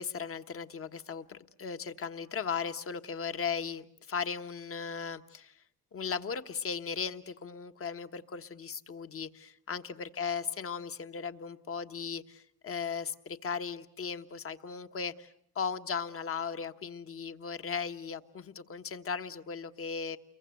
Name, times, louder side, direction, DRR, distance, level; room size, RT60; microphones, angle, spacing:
voice 1, 0.0-5.5 5.9-15.3 15.5-20.2, left 6 dB, 50° left, 9 dB, 1.4 m, -37 dB
29.5 x 23.0 x 7.7 m, 0.66 s
cardioid pair, 90°, 30 cm